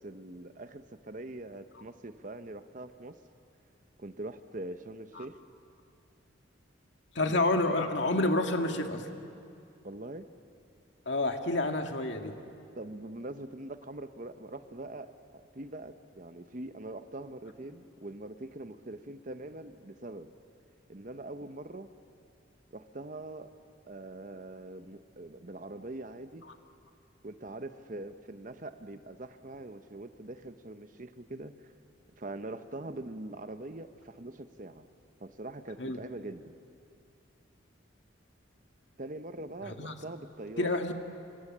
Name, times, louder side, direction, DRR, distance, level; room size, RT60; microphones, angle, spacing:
voice 1, 0.0-3.2 4.0-5.4 7.3-7.4 9.8-10.3 12.7-20.3 20.9-21.9 22.7-23.5 23.9-26.4 27.2-31.7 32.2-34.8 35.2-36.5 39.0-40.9, right 2 dB, 40° right, 10 dB, 0.9 m, -43 dB
voice 2, 7.2-9.1 11.1-12.3 35.8-36.0 39.7-40.0 40.6-40.9, left 2 dB, 65° left, 4 dB, 2.0 m, -29 dB
27.5 x 26.5 x 7.4 m, 2.6 s
head